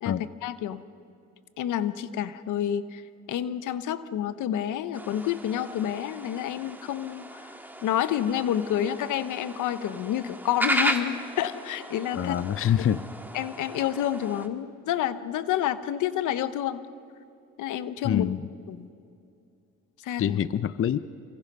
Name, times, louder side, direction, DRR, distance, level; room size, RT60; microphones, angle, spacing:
voice 1, 0.0-0.8 1.6-3.0 3.3-7.5 7.8-12.4 13.3-16.8 17.6-18.3 18.7-18.9 20.0-20.4, left 10 dB, 85° left, 13 dB, 1.0 m, -29 dB
sound 1, 4.9-14.5, right 1 dB, 5° right, 1.9 m, -35 dB
voice 2, 12.1-13.0 18.0-18.5 20.2-21.0, left 9 dB, 45° left, 15 dB, 0.7 m, -25 dB
27.0 x 25.0 x 5.5 m, 2.6 s
cardioid pair, 90°, 30 cm